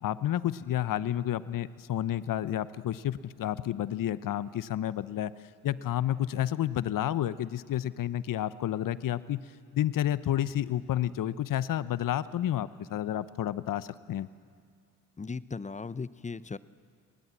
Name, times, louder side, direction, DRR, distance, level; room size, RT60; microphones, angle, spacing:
voice 1, 0.0-5.3 5.6-9.4 9.7-14.3, left 12 dB, 50° left, 17 dB, 0.9 m, -30 dB
voice 2, 15.2-16.6, left 4 dB, 15° left, 18 dB, 0.7 m, -37 dB
29.5 x 20.0 x 7.4 m, 2.2 s
hypercardioid pair, 50°, 42 cm